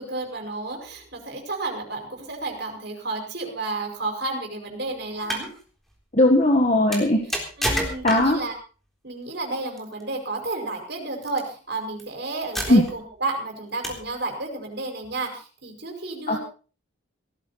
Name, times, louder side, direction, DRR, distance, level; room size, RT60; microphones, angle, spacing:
voice 1, 0.0-5.5 7.6-8.5 9.0-16.4, right 2 dB, 55° right, 3 dB, 5.6 m, -31 dB
sound 1, 5.1-5.5 6.9-8.5 9.8-10.0 11.2-11.4 12.0-12.1 12.5-13.1 13.8-14.1, equal, ahead, 3.7 m, -29 dB
voice 2, 6.1-7.2 7.7-7.8 8.0-8.4 12.7-12.8 16.3-16.4, left 1 dB, 35° left, 3 dB, 1.8 m, -18 dB
18.0 x 14.5 x 4.3 m, 0.37 s
head